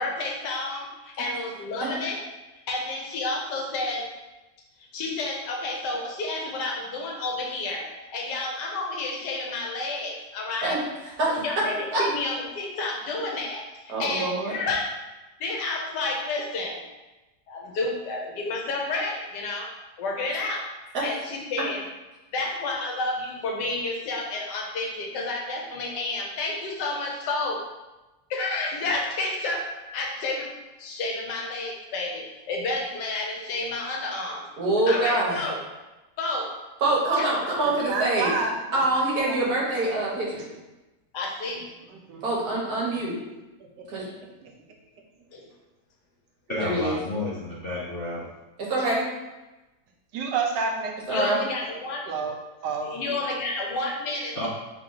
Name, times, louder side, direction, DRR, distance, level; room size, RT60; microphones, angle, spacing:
voice 1, 0.0-2.2 2.7-4.1 4.9-10.8 11.2-14.9 15.4-16.8 17.5-19.7 20.0-20.7 21.0-21.8 22.3-27.6 28.3-29.7 29.9-30.5 30.8-34.4 34.9-35.6 36.2-36.5 37.1-37.5 41.1-41.7 45.3-45.5 51.1-52.0 52.9-54.5, left 2 dB, 75° left, 0 dB, 1.4 m, -30 dB
voice 2, 11.2-11.7 11.9-12.0 13.9-14.6 20.9-21.1 34.6-35.5 36.8-38.3 38.7-40.5 42.2-43.1 43.9-44.1 46.6-47.0 48.6-49.1 51.1-51.4, right 2 dB, 65° right, -4 dB, 1.5 m, -25 dB
voice 3, 37.6-38.8 39.2-39.4 40.3-40.6 41.9-42.3 42.9-43.0 43.8-43.9 44.4-44.5 46.5-46.6 50.1-50.9 52.1-52.4 52.6-53.0, right 4 dB, 85° right, 2 dB, 1.3 m, -30 dB
voice 4, 46.5-48.2 54.3-54.5, left 2 dB, 50° left, -7 dB, 0.7 m, -30 dB
3.6 x 3.5 x 3.8 m, 1.1 s
omnidirectional pair, 1.8 m